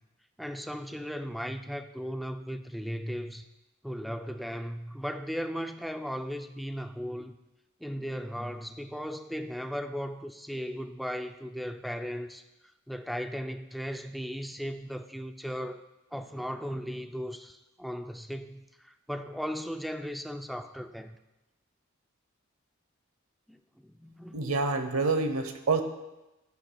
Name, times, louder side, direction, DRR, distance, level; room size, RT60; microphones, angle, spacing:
voice 1, 0.4-3.5 3.8-7.4 7.8-12.4 12.9-15.8 16.1-21.2 23.5-24.4, equal, ahead, 7 dB, 0.3 m, -37 dB
voice 2, 24.3-25.8, right 3 dB, 90° right, 8 dB, 0.9 m, -27 dB
12.0 x 10.0 x 2.3 m, 0.99 s
head